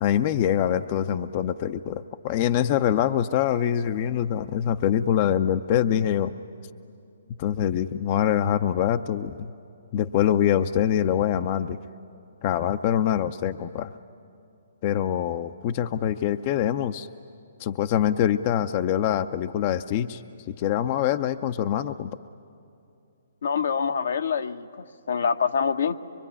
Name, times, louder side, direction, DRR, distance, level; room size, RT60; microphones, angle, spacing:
voice 1, 0.0-6.3 7.4-9.5 9.9-11.8 12.4-13.9 14.8-17.1 17.6-20.2 20.5-22.1, left 10 dB, 40° left, 10 dB, 0.6 m, -24 dB
voice 2, 23.4-26.0, left 6 dB, 70° left, 8 dB, 0.9 m, -26 dB
24.0 x 23.5 x 9.9 m, 2.6 s
hypercardioid pair, 135°, 0 cm